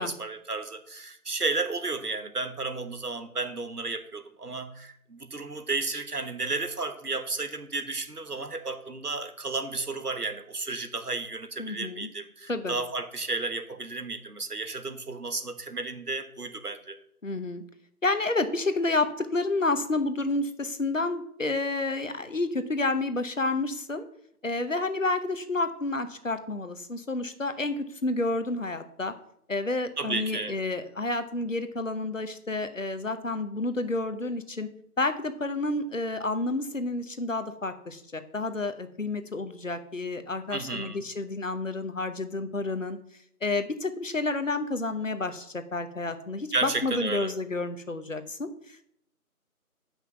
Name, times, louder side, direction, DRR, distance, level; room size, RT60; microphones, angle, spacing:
voice 1, 0.0-17.0 30.0-30.6 40.5-41.1 46.5-47.3, right 3 dB, 85° right, 9 dB, 1.3 m, -33 dB
voice 2, 11.6-12.1 12.5-12.7 17.2-17.6 18.0-24.1 24.4-29.1 29.5-34.7 35.0-43.0 43.4-48.8, left 2 dB, 60° left, 10 dB, 0.9 m, -30 dB
7.6 x 5.7 x 5.9 m, 0.70 s
figure-of-eight pair, 170°, 45 cm